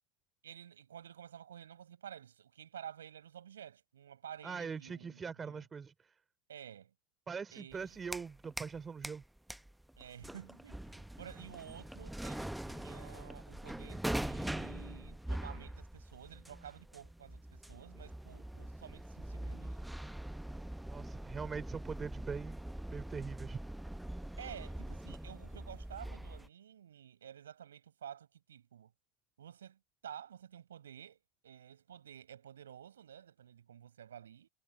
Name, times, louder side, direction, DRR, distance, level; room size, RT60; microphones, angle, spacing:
voice 1, 0.4-5.6 6.5-6.9 7.5-8.1 10.0-19.7 24.4-28.9 29.4-34.5, right 9 dB, 75° right, 5.8 m, -51 dB
voice 2, 4.4-6.1 7.3-9.2 20.9-22.6 22.9-23.6, right 5 dB, 20° right, 4.9 m, -42 dB
sound 1, 7.7-8.8 9.0-26.5, right 1 dB, 5° right, 0.9 m, -43 dB
figure-of-eight pair, 75°, 0 cm